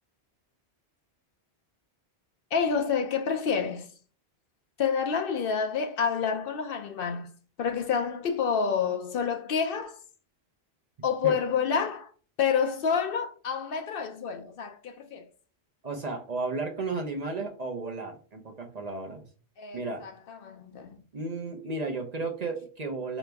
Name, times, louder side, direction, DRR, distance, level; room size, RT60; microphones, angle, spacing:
voice 1, 2.5-3.9 4.8-7.3 7.6-10.0 11.0-12.1 12.4-15.3 19.6-21.0, left 6 dB, 65° left, 0.7 m, -28 dB
voice 2, 15.8-19.2 19.7-20.0 21.1-23.2, right 3 dB, 45° right, 0.7 m, -33 dB
4.8 x 3.0 x 3.4 m
omnidirectional pair, 1.1 m